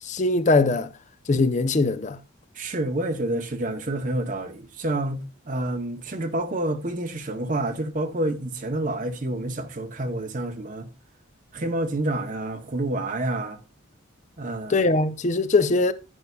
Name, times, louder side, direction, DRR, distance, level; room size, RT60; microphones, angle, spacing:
voice 1, 0.1-0.9 1.3-2.2 14.7-15.9, left 3 dB, 35° left, 0.5 m, -21 dB
voice 2, 2.5-10.9 11.5-13.6 14.4-14.9, right 1 dB, 40° right, 0.8 m, -28 dB
11.0 x 9.3 x 2.3 m
head